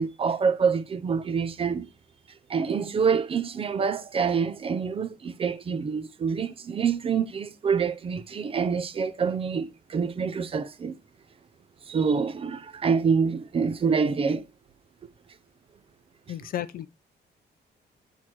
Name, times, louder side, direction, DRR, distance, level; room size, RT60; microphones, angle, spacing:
voice 1, 0.0-1.9 2.5-11.0 11.9-14.4, right 6 dB, 30° right, 0.5 m, -26 dB
voice 2, 16.3-16.9, left 11 dB, 55° left, 0.5 m, -33 dB
8.3 x 4.4 x 2.9 m
cardioid pair, 165°, 18 cm